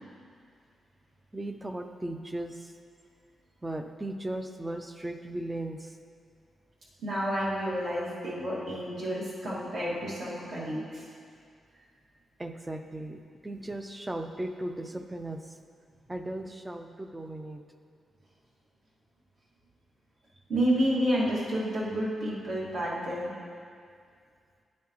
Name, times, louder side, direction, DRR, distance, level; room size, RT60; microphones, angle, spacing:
voice 1, 1.3-2.7 3.6-6.0 12.4-15.6 16.1-17.6, right 1 dB, 10° right, 6 dB, 0.3 m, -37 dB
voice 2, 7.0-11.0 20.5-23.3, equal, 60° right, -7 dB, 1.9 m, -30 dB
9.5 x 7.3 x 3.0 m, 2.2 s
wide cardioid pair, 175°, 0 cm